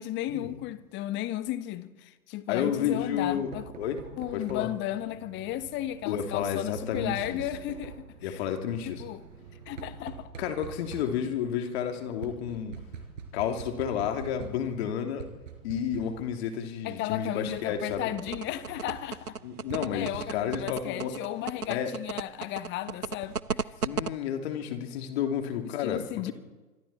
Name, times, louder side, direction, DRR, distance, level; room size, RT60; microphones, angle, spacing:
voice 1, 0.0-3.7 4.2-8.4 8.8-9.2 9.7-10.3 16.8-19.4 19.8-23.7 25.7-26.3, left 13 dB, 25° left, 1.3 m, -34 dB
voice 2, 2.5-4.0 4.3-4.7 6.1-7.4 8.2-9.0 10.4-12.8 13.3-15.3 15.6-18.1 19.4-21.1 21.7-21.9 23.8-26.3, left 8 dB, 45° left, 3.0 m, -31 dB
Knock, 2.7-21.1, right 6 dB, 60° right, 5.1 m, -46 dB
sound 1, 18.2-24.1, right 5 dB, 90° right, 0.8 m, -33 dB
26.0 x 25.0 x 4.3 m
figure-of-eight pair, 105°, 44 cm